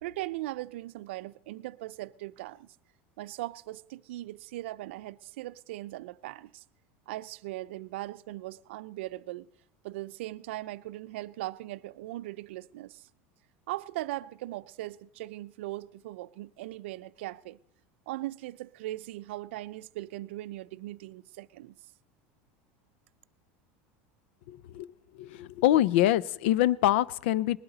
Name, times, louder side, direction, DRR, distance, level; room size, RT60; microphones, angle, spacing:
voice 1, 0.0-2.7 3.2-6.6 7.1-9.5 9.8-13.1 13.7-17.6 18.1-21.8, right 17 dB, 85° right, 0.4 m, -39 dB
voice 2, 24.5-24.9 25.2-27.6, left 13 dB, 75° left, 0.4 m, -25 dB
20.0 x 12.0 x 3.9 m
supercardioid pair, 170°, 6 cm